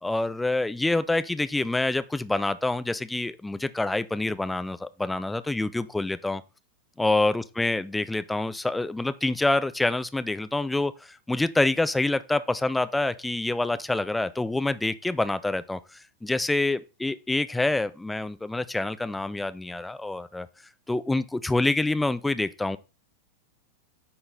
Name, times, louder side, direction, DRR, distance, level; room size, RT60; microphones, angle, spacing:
voice 1, 0.0-6.4 7.0-20.5 20.9-22.8, left 2 dB, 5° left, 0.4 m, -27 dB
9.4 x 3.9 x 3.8 m
figure-of-eight pair, 90°, 0 cm